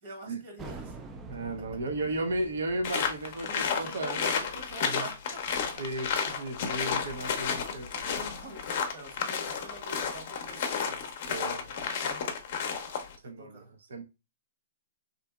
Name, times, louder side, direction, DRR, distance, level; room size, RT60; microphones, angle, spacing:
voice 1, 0.0-1.0 1.7-1.8 3.4-5.8 7.9-10.8 11.6-12.3 13.2-13.7, right 1 dB, 45° right, 1.1 m, -46 dB
sound 1, 0.6-5.9, right 3 dB, 20° right, 0.3 m, -47 dB
voice 2, 1.3-4.2 4.8-5.1 5.8-7.9 10.9-11.0 11.3-11.7 13.2-13.6 13.9-14.0, right 1 dB, 70° right, 0.6 m, -34 dB
sound 2, 2.8-13.1, left 6 dB, 50° left, 0.6 m, -32 dB
2.7 x 2.5 x 2.2 m
hypercardioid pair, 125°, 0 cm